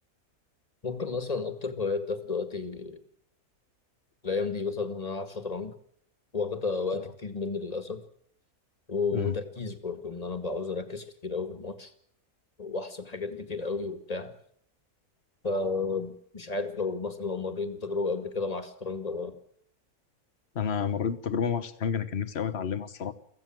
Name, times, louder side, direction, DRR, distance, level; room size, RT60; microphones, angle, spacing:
voice 1, 0.8-3.0 4.2-5.7 6.3-8.0 8.9-11.9 12.6-14.4 15.4-19.4, left 4 dB, 25° left, 8 dB, 2.0 m, -32 dB
voice 2, 20.5-23.1, left 7 dB, 45° left, 12 dB, 1.4 m, -30 dB
24.0 x 15.5 x 7.7 m, 0.68 s
omnidirectional pair, 1.6 m